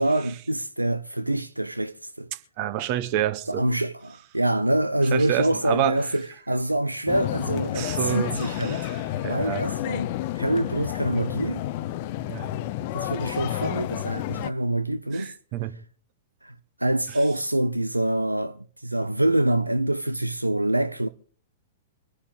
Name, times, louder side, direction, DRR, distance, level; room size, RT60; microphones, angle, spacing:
voice 1, 0.0-2.3 3.5-8.9 9.2-11.6 12.9-15.3 16.4-16.5 16.8-21.1, right 1 dB, 85° right, 0.5 m, -25 dB
voice 2, 2.6-3.6 5.1-6.0 7.7-9.6 12.3-12.5 15.1-15.7, right 12 dB, 40° right, 1.4 m, -28 dB
sound 1, 7.1-14.5, left 13 dB, 45° left, 0.6 m, -30 dB
24.5 x 9.9 x 4.0 m
figure-of-eight pair, 105°, 0 cm